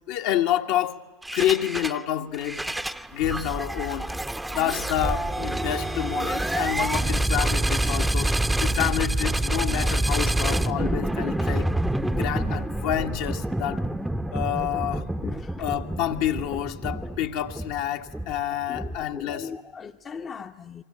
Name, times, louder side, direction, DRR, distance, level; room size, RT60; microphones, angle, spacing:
voice 1, 0.1-1.0 1.3-2.6 3.1-4.1 4.5-8.3 8.6-11.7 12.1-13.8 14.3-15.1 15.6-19.5, left 11 dB, 60° left, 1.8 m, -28 dB
sound 1, 1.2-2.0 2.3-19.3, right 1 dB, 5° right, 1.0 m, -27 dB
voice 2, 18.7-20.8, left 6 dB, 30° left, 1.1 m, -38 dB
26.5 x 24.5 x 8.8 m
hypercardioid pair, 90°, 0 cm